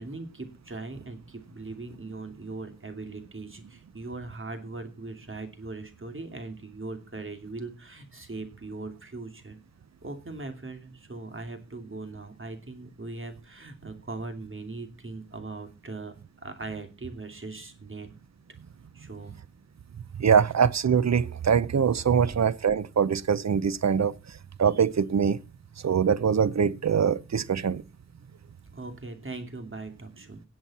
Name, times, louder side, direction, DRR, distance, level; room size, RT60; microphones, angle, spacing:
voice 1, 0.0-9.6 10.0-16.1 16.4-18.1 18.9-19.3 22.3-22.4 28.7-30.4, right 3 dB, 45° right, 2.6 m, -40 dB
voice 2, 20.2-24.1 24.6-25.4 25.8-27.8, right 7 dB, 65° right, 0.7 m, -23 dB
17.5 x 7.8 x 4.2 m
wide cardioid pair, 75°, 29 cm